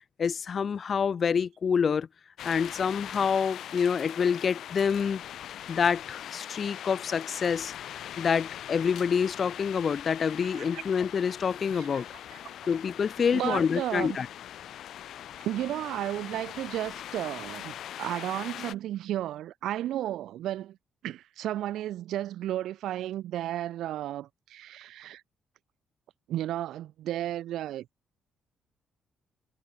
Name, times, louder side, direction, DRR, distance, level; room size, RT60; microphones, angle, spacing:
voice 1, 0.2-2.1 2.4-5.2 5.7-7.7 8.2-12.1 12.7-14.3, left 6 dB, 45° left, 0.3 m, -27 dB
sound 1, 2.4-18.7, left 11 dB, 75° left, 2.6 m, -41 dB
voice 2, 13.3-14.2 15.4-20.8 21.0-25.2 26.3-27.9, right 13 dB, 80° right, 0.4 m, -33 dB
cardioid pair, 90°, 0 cm